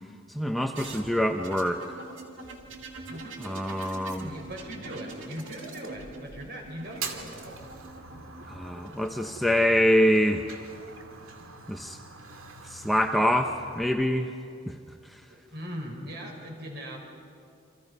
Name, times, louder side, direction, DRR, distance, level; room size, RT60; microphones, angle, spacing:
voice 1, 0.3-2.0 3.4-4.3 8.5-10.4 11.7-12.0 12.6-14.3 14.7-14.8, equal, ahead, 4 dB, 0.8 m, -25 dB
sound 1, 0.7-9.3 10.4-11.0, right 3 dB, 70° right, 2.5 m, -45 dB
voice 2, 3.1-3.4 3.7-7.6 15.3-17.0, equal, 50° right, 1 dB, 5.5 m, -40 dB
Fire, 6.9-13.8, right 5 dB, 90° right, 2.3 m, -43 dB
29.0 x 26.5 x 5.5 m, 2.4 s
head